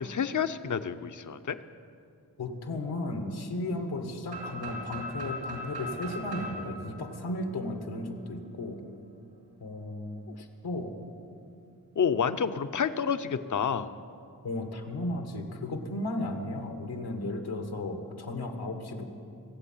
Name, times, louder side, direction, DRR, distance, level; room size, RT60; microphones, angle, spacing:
voice 1, 0.0-1.6 10.3-10.4 12.0-13.9, left 7 dB, 50° left, 11 dB, 0.8 m, -29 dB
voice 2, 2.4-8.8 9.6-10.9 14.4-19.1, left 2 dB, 85° left, 5 dB, 1.7 m, -35 dB
sound 1, 4.3-8.1, equal, 80° right, 3.6 m, -39 dB
23.5 x 7.9 x 5.8 m, 2.4 s
cardioid pair, 45°, 38 cm